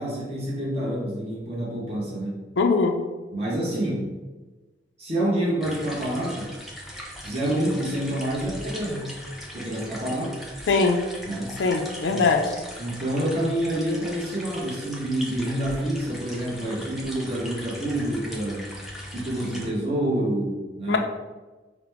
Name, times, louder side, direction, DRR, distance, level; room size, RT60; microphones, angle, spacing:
voice 1, 0.0-2.4 3.3-4.1 5.0-6.5 7.2-9.1 9.5-10.4 11.3-11.6 12.1-12.2 12.8-18.7 19.1-21.0, right 1 dB, 35° right, -6 dB, 0.9 m, -27 dB
voice 2, 2.6-3.0 10.7-11.0 11.6-12.5 20.9-21.0, left 4 dB, 90° left, 3 dB, 0.5 m, -21 dB
sound 1, 5.6-19.7, equal, ahead, 0.5 m, -40 dB
4.8 x 2.1 x 3.4 m, 1.2 s
head